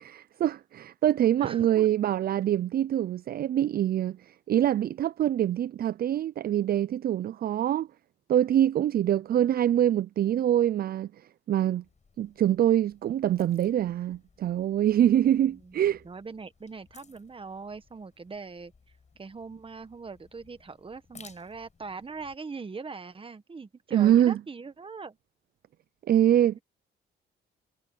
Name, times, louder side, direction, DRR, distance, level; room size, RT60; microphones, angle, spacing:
voice 1, 0.4-7.9 8.3-11.8 12.2-16.0 23.9-24.4 26.1-26.6, right 11 dB, 50° right, 0.4 m, -24 dB
voice 2, 1.4-1.9 15.1-18.7 19.1-25.2 26.5-26.6, right 4 dB, 25° right, 1.5 m, -41 dB
sound 1, 11.8-22.3, left 5 dB, 35° left, 7.2 m, -59 dB
cardioid pair, 90°, 20 cm